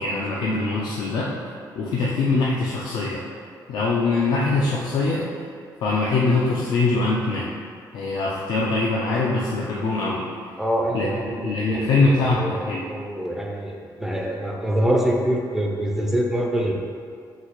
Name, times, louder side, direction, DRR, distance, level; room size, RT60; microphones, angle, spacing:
voice 1, 0.0-1.3 1.8-3.2 3.7-5.3 5.8-7.5 7.9-10.2 10.9-12.9, left 3 dB, 65° left, -4 dB, 0.4 m, -23 dB
voice 2, 10.6-11.8 12.3-16.7, right 1 dB, 5° right, -1 dB, 0.3 m, -25 dB
4.0 x 2.6 x 4.4 m, 2.2 s
cardioid pair, 150°, 8 cm